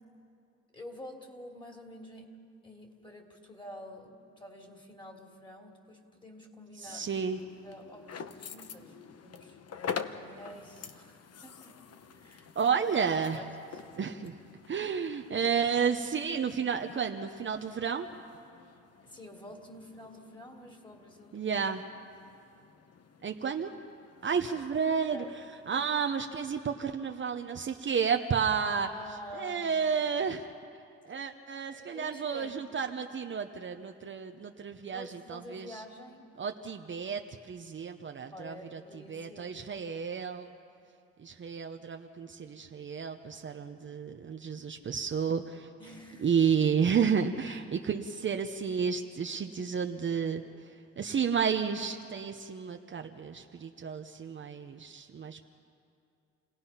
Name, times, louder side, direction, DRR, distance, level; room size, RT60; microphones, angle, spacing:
voice 1, 0.7-2.4 2.6-7.1 7.6-9.6 10.1-11.9 12.1-12.5 13.3-13.8 19.0-21.4 24.3-24.6 25.1-25.3 28.8-29.9 31.1-31.3 31.7-32.6 34.9-36.3 38.3-39.6 45.8-46.3 47.5-47.6, equal, 15° left, 2 dB, 3.1 m, -48 dB
sound 1, 6.8-26.0, left 7 dB, 55° left, 1.0 m, -47 dB
voice 2, 6.8-7.4 12.6-13.4 13.9-14.4 14.7-18.1 21.3-21.8 23.2-23.8 24.2-25.2 25.7-28.9 29.3-30.5 31.0-35.8 36.4-38.8 39.1-40.5 41.2-45.7 46.2-50.4 51.0-55.5, right 6 dB, 40° right, 5 dB, 0.9 m, -31 dB
29.0 x 17.5 x 5.7 m, 2.5 s
cardioid pair, 90°, 30 cm